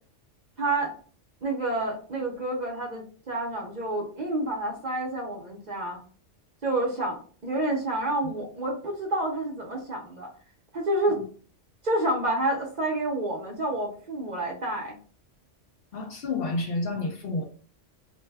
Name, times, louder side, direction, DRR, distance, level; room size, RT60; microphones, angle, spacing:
voice 1, 0.6-0.9 1.4-6.0 6.6-10.3 10.7-11.2 11.8-15.0, right 1 dB, 45° right, 0.7 m, -29 dB
voice 2, 15.9-17.5, left 2 dB, 65° left, 0.7 m, -30 dB
2.6 x 2.1 x 3.3 m
omnidirectional pair, 1.2 m